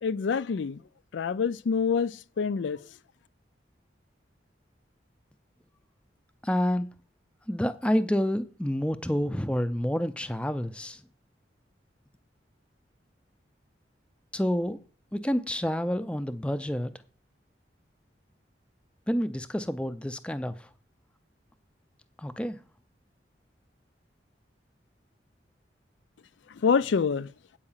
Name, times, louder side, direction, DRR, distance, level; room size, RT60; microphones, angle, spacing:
voice 1, 0.0-0.8 1.1-2.8 26.5-27.3, left 5 dB, 85° left, 0.4 m, -26 dB
voice 2, 6.4-6.9 7.5-11.0 14.3-14.8 15.1-16.9 19.1-20.7 22.2-22.6, equal, 5° left, 0.5 m, -28 dB
8.8 x 4.8 x 7.2 m
head